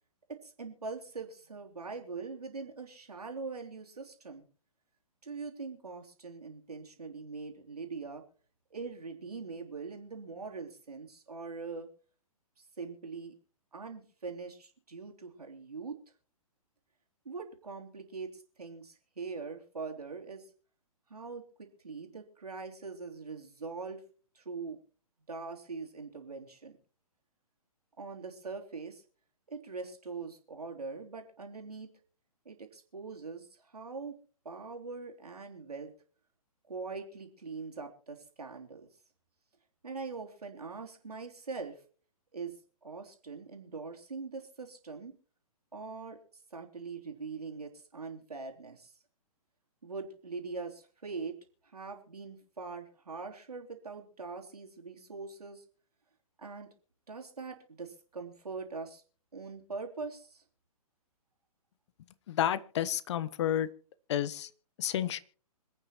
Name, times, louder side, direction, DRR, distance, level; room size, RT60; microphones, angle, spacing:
voice 1, 0.3-4.4 5.2-8.2 8.7-11.9 12.6-13.3 13.7-16.0 17.2-20.5 21.1-24.0 24.3-24.8 25.3-26.8 28.0-29.0 29.5-31.9 32.4-34.2 34.4-35.9 36.7-38.9 39.8-41.8 42.3-42.6 42.8-45.1 45.7-46.2 46.5-48.9 49.8-55.6 56.4-56.7 57.1-59.0 59.3-60.4, right 4 dB, 80° right, 2 dB, 3.2 m, -42 dB
voice 2, 62.3-63.7 64.1-64.5 64.8-65.2, left 11 dB, 50° left, 17 dB, 1.0 m, -30 dB
26.5 x 9.0 x 3.1 m, 0.42 s
figure-of-eight pair, 125°, 19 cm